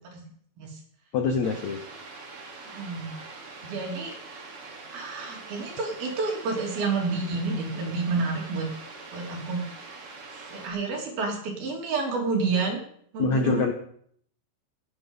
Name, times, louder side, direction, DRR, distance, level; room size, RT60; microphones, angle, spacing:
voice 1, 1.1-1.8 13.2-13.7, left 4 dB, 70° left, 5 dB, 1.8 m, -24 dB
sound 1, 1.4-10.7, right 3 dB, 40° right, 3.0 m, -44 dB
voice 2, 2.6-3.1 3.6-4.1 4.9-8.7 9.1-9.6 10.5-12.8 13.1-13.6, right 4 dB, 65° right, 1 dB, 4.9 m, -29 dB
16.5 x 10.0 x 5.5 m, 0.62 s
omnidirectional pair, 4.8 m